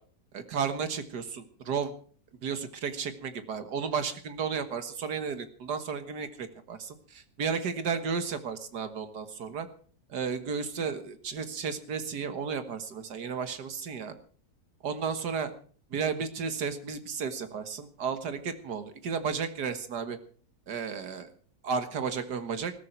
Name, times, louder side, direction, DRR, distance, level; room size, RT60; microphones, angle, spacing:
voice 1, 0.3-1.9 2.4-9.7 10.1-14.2 14.8-15.5 15.9-20.2 20.7-21.3 21.6-22.7, right 6 dB, 70° right, 10 dB, 2.1 m, -33 dB
20.0 x 13.5 x 4.5 m, 0.43 s
omnidirectional pair, 1.8 m